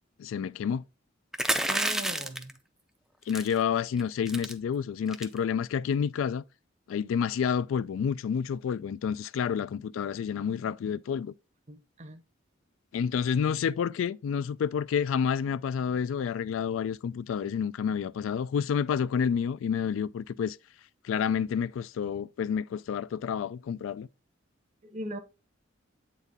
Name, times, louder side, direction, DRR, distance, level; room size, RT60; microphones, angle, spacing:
voice 1, 0.2-0.8 3.3-6.4 6.9-11.3 12.9-20.6 21.0-24.1, left 7 dB, 75° left, 0.3 m, -29 dB
sound 1, 1.3-2.5 3.3-3.6 4.0-4.1 4.3-4.5 5.1-5.4, right 1 dB, ahead, 0.4 m, -29 dB
voice 2, 1.7-2.5 11.7-12.2 24.8-25.2, right 1 dB, 35° right, 0.7 m, -39 dB
8.1 x 4.1 x 3.5 m
head